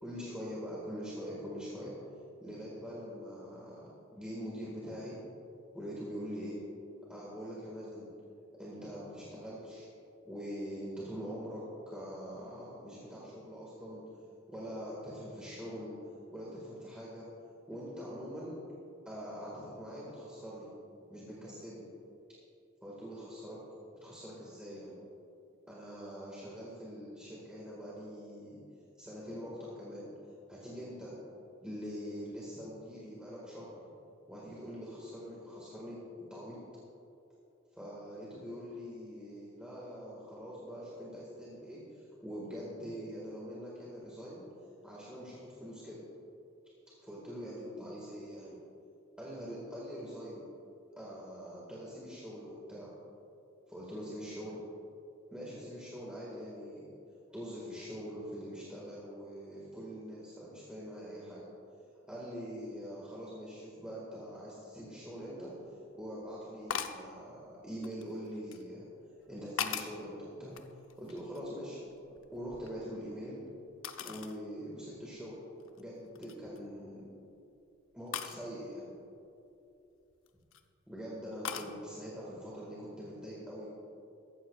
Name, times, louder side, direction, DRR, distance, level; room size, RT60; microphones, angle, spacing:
voice 1, 0.0-1.9 2.4-5.2 5.7-6.6 7.1-8.1 8.6-9.9 10.2-14.0 14.5-15.9 16.3-17.3 17.7-18.6 19.1-20.7 21.1-21.9 22.8-23.6 24.0-25.0 25.7-28.6 29.0-30.1 30.5-31.1 31.6-33.7 34.3-36.0 36.3-36.6 37.7-44.5 44.8-46.0 47.0-48.6 49.2-50.5 51.0-52.9 53.7-54.6 55.3-57.0 57.3-61.5 62.1-65.5 65.9-68.8 69.3-70.5 71.0-71.8 72.3-73.4 74.0-75.4 75.8-77.0 77.9-78.9 80.9-83.7, equal, 5° right, -7 dB, 1.8 m, -43 dB
sound 1, 66.7-67.1 67.8-68.6 69.2-70.1 70.5-71.6 71.9-73.2 73.8-74.4 74.9-75.0 75.6-75.8 76.2-76.6 78.1-78.4 80.1-80.6 81.4-81.7, left 8 dB, 70° left, 0.6 m, -40 dB
14.5 x 13.5 x 2.4 m, 2.7 s
head